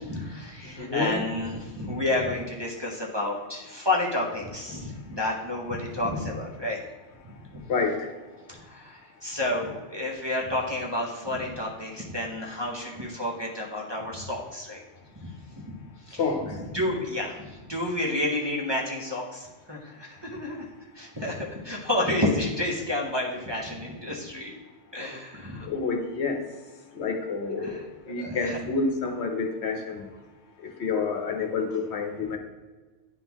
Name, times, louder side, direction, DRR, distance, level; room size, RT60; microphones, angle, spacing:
voice 1, 0.0-6.8 7.2-7.7 8.5-14.8 15.2-16.2 16.5-20.7 20.9-24.5 24.9-25.7 27.6-27.9 28.2-28.6, left 1 dB, 25° right, -4 dB, 0.7 m, -30 dB
voice 2, 0.6-1.2 7.7-8.1 16.2-16.6 25.6-26.4 26.9-30.0 30.8-32.4, left 4 dB, 70° left, 4 dB, 1.0 m, -28 dB
9.8 x 3.7 x 3.0 m, 1.3 s
omnidirectional pair, 1.2 m